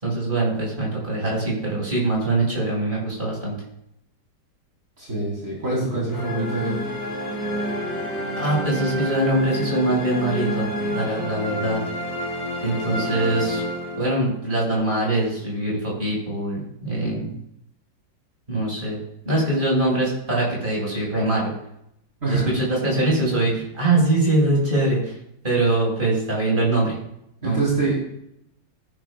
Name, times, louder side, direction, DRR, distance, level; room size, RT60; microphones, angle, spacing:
voice 1, 0.0-3.5 8.4-10.7 10.9-11.8 12.6-13.6 14.0-17.3 18.5-21.5 22.2-25.1 25.4-27.0 27.4-27.7, right 2 dB, 25° right, -3 dB, 6.4 m, -23 dB
voice 2, 5.0-6.8 22.2-22.6 27.4-27.9, right 3 dB, 45° right, -6 dB, 5.1 m, -25 dB
sound 1, 6.1-14.5, equal, 35° left, 5.1 m, -29 dB
21.0 x 11.0 x 2.5 m, 0.78 s
omnidirectional pair, 2.0 m